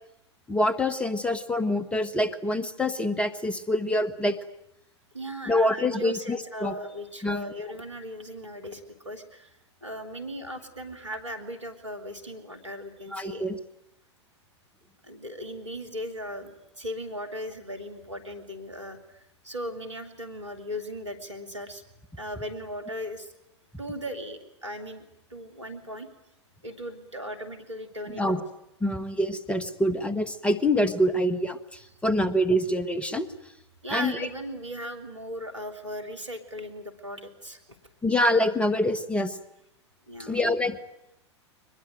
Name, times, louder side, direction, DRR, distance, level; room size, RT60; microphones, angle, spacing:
voice 1, 0.5-4.4 5.5-6.8 7.2-7.5 13.1-13.6 28.1-28.4 28.8-33.3 33.9-34.3 38.0-39.4 40.2-40.8, left 1 dB, 10° left, 13 dB, 1.4 m, -25 dB
voice 2, 5.1-13.5 15.0-21.8 22.2-23.3 23.8-25.0 25.3-26.1 26.6-28.5 33.8-37.6 40.1-40.4, equal, 85° right, 8 dB, 3.1 m, -38 dB
22.5 x 21.0 x 9.3 m, 0.83 s
figure-of-eight pair, 95°, 15 cm